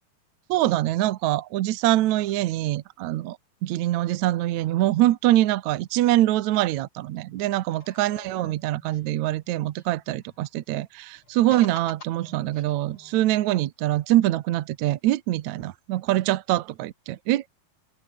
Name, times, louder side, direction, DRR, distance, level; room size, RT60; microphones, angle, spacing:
voice 1, 0.5-3.4 3.6-17.5, right 15 dB, 75° right, 1.7 m, -24 dB
sound 1, 7.7-10.4 11.2-13.1, left 2 dB, 30° left, 7.9 m, -48 dB
open air
omnidirectional pair, 4.4 m